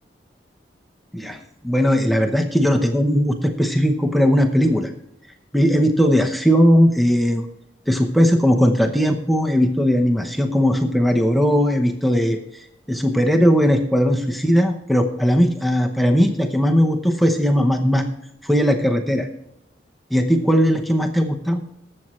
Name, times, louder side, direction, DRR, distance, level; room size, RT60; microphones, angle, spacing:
voice 1, 1.1-4.9 5.5-7.5 7.9-18.0 18.4-19.3 20.1-21.6, equal, ahead, 3 dB, 0.8 m, -18 dB
20.0 x 7.6 x 3.1 m, 0.78 s
head